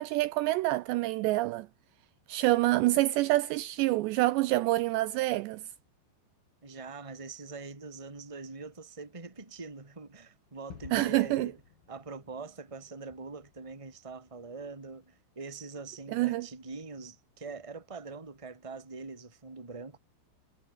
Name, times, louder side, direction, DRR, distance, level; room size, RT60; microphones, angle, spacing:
voice 1, 0.0-1.7 2.3-5.6 10.9-11.5 16.1-16.5, right 18 dB, 80° right, 2.7 m, -27 dB
voice 2, 6.6-11.6 11.9-20.0, right 4 dB, 10° right, 1.9 m, -43 dB
Gunshot gunfire / Fireworks / Boom, 10.7-15.5, left 8 dB, 50° left, 4.4 m, -55 dB
omnidirectional pair, 5.4 m